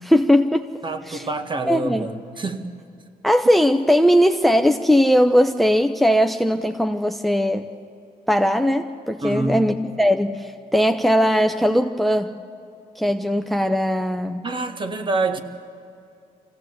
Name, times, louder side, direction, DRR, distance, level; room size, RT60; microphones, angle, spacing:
voice 1, 0.0-0.7 1.1-1.3 1.7-2.1 3.2-7.7 8.3-12.3 13.0-14.4, equal, ahead, 0.7 m, -19 dB
voice 2, 0.8-2.7 9.2-9.6 14.4-15.4, right 2 dB, 30° right, 1.6 m, -26 dB
24.5 x 16.0 x 8.0 m
cardioid pair, 85°, 15 cm